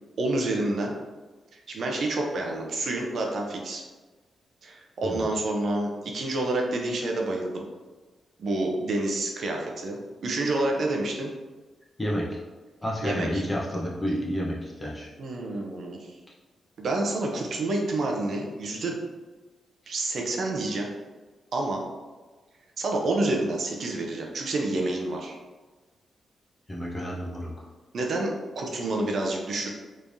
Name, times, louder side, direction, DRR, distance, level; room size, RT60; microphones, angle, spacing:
voice 1, 0.2-1.0 1.5-3.8 4.6-7.6 8.4-11.3 13.0-13.4 15.2-16.1 16.8-19.0 19.9-20.9 21.5-21.8 22.8-25.4 27.9-29.7, right 2 dB, 65° right, 0 dB, 0.6 m, -28 dB
voice 2, 12.0-12.4 12.8-15.1 26.7-27.7, equal, 20° left, -3 dB, 0.9 m, -30 dB
3.5 x 3.2 x 2.6 m, 1.3 s
cardioid pair, 75°, 0 cm